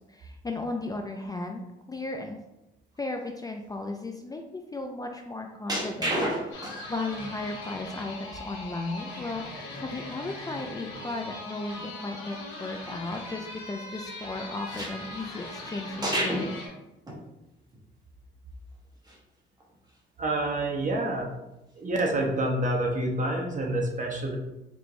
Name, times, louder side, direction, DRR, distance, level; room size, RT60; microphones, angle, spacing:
voice 1, 0.1-1.6 1.9-2.4 3.0-6.1 6.4-16.6, left 2 dB, 20° left, 3 dB, 0.4 m, -35 dB
sound 1, 5.7-7.0 7.5-7.6 9.7-9.8 10.2-10.3 10.7-10.8 14.7-15.6 16.0-16.6 17.1-17.2 17.7-17.8 19.0-19.2 19.6-19.9 22.1-22.3, right 1 dB, 20° right, 1.1 m, -31 dB
sound 2, 6.5-16.7, left 2 dB, 85° left, 1.3 m, -40 dB
voice 2, 20.2-21.3 21.8-24.4, right 1 dB, 40° right, 0 dB, 0.9 m, -27 dB
4.3 x 3.0 x 2.6 m, 0.95 s
cardioid pair, 90°, 20 cm